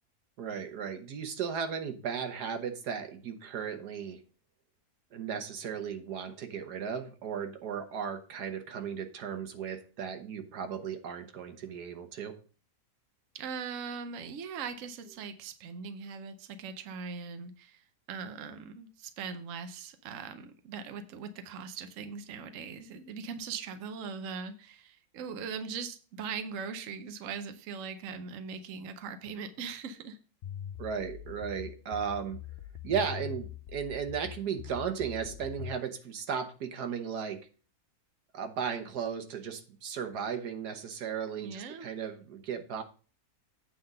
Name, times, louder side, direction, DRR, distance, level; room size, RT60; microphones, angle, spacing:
voice 1, 0.4-4.2 5.1-12.3 30.8-32.4 32.8-37.4 38.3-42.8, right 7 dB, 80° right, 7 dB, 1.6 m, -35 dB
voice 2, 13.3-17.8 18.1-30.2 41.4-41.9, right 6 dB, 60° right, 8 dB, 1.0 m, -40 dB
sound 1, 30.4-35.8, left 11 dB, 65° left, 0.6 m, -43 dB
8.5 x 3.8 x 6.5 m, 0.38 s
omnidirectional pair, 1.7 m